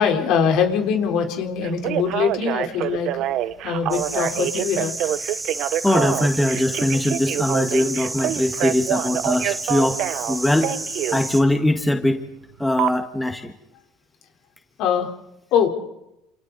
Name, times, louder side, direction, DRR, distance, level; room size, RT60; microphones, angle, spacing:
voice 1, 0.0-3.2 3.6-4.9 14.8-15.1 15.5-15.7, left 7 dB, 60° left, 3 dB, 4.2 m, -22 dB
Telephone, 1.6-11.2 12.8-12.9, right 13 dB, 55° right, 0.9 m, -26 dB
sound 1, 3.9-11.4, right 2 dB, 10° right, 3.3 m, -31 dB
voice 2, 5.8-10.0 10.3-10.7 11.1-12.2 12.6-13.5, left 1 dB, 5° left, 5 dB, 1.7 m, -21 dB
29.5 x 28.0 x 4.2 m, 0.85 s
supercardioid pair, 120°, 0 cm